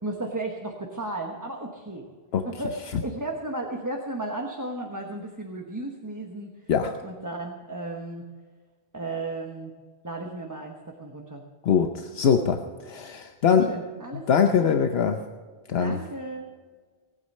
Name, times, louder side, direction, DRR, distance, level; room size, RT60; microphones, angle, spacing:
voice 1, 0.0-2.1 2.4-6.7 7.0-8.2 8.9-9.7 10.0-11.4 13.5-14.5 15.8-16.5, right 2 dB, 20° right, 0 dB, 1.1 m, -34 dB
voice 2, 11.6-13.7 14.3-15.2 15.7-16.0, left 7 dB, 80° left, 6 dB, 1.0 m, -22 dB
19.0 x 9.2 x 5.4 m, 1.5 s
omnidirectional pair, 1.0 m